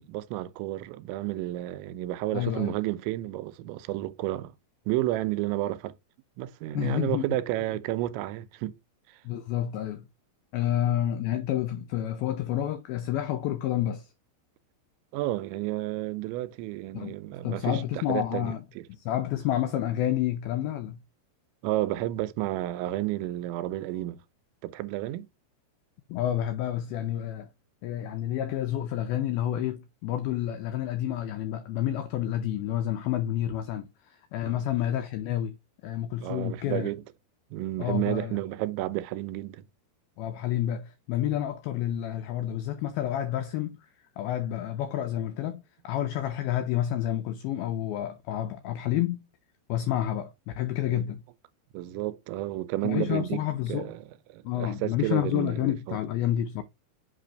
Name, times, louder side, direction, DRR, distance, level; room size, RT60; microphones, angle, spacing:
voice 1, 0.0-4.5 4.9-5.9 6.4-8.8 15.1-18.8 21.6-24.2 24.6-25.3 34.4-34.7 36.2-37.0 37.5-39.7 50.8-51.0 51.7-53.4 53.7-54.0 54.3-56.0, right 16 dB, 90° right, 3.0 m, -31 dB
voice 2, 2.3-2.7 6.7-7.3 9.3-10.1 10.5-14.1 16.9-17.2 17.4-18.6 19.1-21.0 26.1-27.5 27.8-35.6 35.8-36.9 37.8-38.4 40.2-43.8 44.2-49.2 49.7-51.2 52.8-53.9 54.4-56.6, left 12 dB, 90° left, 2.1 m, -29 dB
8.1 x 3.3 x 5.1 m
omnidirectional pair, 5.1 m